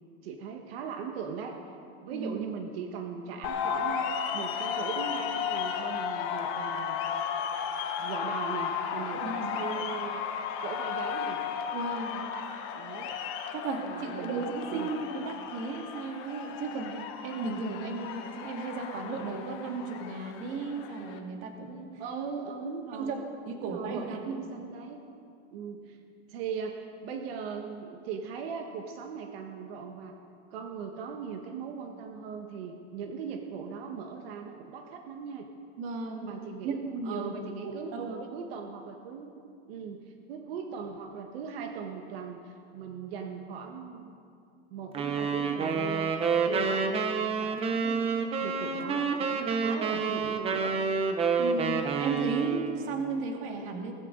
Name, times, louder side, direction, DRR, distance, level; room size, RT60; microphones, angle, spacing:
voice 1, 0.2-1.5 2.0-7.2 8.0-10.2 10.6-11.4 12.7-13.1 13.8-14.9 22.0-23.2 23.5-25.0 25.5-26.0 26.3-30.1 30.5-35.5 36.2-39.3 39.7-44.1 44.7-46.1 46.4-48.1 48.4-50.8, right 6 dB, 70° right, 3 dB, 1.5 m, -39 dB
sound 1, 3.4-21.2, left 7 dB, 40° left, 1.2 m, -34 dB
voice 2, 9.1-9.8 11.7-12.2 13.5-21.9 22.9-23.2 23.5-24.4 35.8-36.3 36.6-37.3 37.6-38.2 51.4-53.9, right 4 dB, 40° right, 2 dB, 2.0 m, -35 dB
sound 2, 44.9-52.9, right 5 dB, 20° right, 0.9 m, -28 dB
19.0 x 15.0 x 3.9 m, 2.4 s
supercardioid pair, 160°, 31 cm